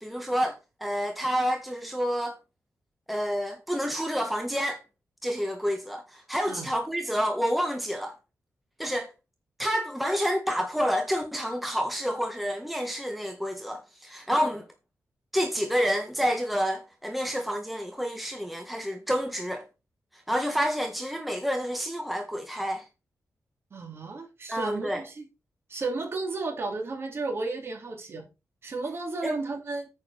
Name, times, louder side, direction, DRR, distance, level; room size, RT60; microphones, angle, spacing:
voice 1, 0.0-2.4 3.1-4.8 5.2-8.1 8.8-9.1 9.6-14.7 15.3-19.7 20.1-22.8 24.5-25.0 29.2-29.4, equal, ahead, 1.5 m, -29 dB
voice 2, 23.7-25.2 25.7-28.2 28.6-29.9, right 3 dB, 45° right, 2.9 m, -33 dB
9.5 x 4.7 x 6.4 m
wide cardioid pair, 155°, 6 cm